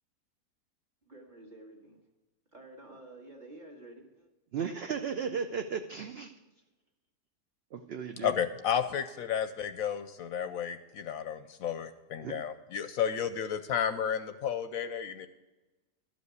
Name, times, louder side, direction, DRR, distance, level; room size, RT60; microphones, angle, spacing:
voice 1, 1.0-2.0 2.5-4.3, right 1 dB, 30° right, 0 dB, 1.9 m, -50 dB
voice 2, 4.5-6.3 7.7-8.3 12.2-12.4, right 6 dB, 65° right, 6 dB, 0.6 m, -35 dB
voice 3, 8.2-15.3, left 8 dB, 70° left, 9 dB, 0.9 m, -32 dB
12.5 x 5.3 x 8.1 m, 1.1 s
omnidirectional pair, 1.7 m